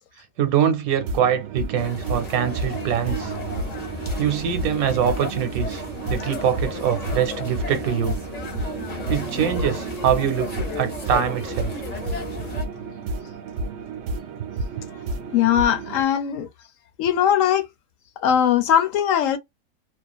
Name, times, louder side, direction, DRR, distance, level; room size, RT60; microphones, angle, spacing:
voice 1, 0.4-3.3 4.2-5.8 6.1-8.2 9.1-11.7, right 9 dB, 85° right, 1.2 m, -23 dB
sound 1, 1.0-16.0, right 3 dB, 65° right, 0.8 m, -31 dB
sound 2, 1.7-12.6, left 3 dB, 35° left, 0.9 m, -34 dB
voice 2, 15.3-16.5 17.0-17.6 18.2-19.4, left 9 dB, 70° left, 0.9 m, -20 dB
2.4 x 2.4 x 2.3 m
omnidirectional pair, 1.5 m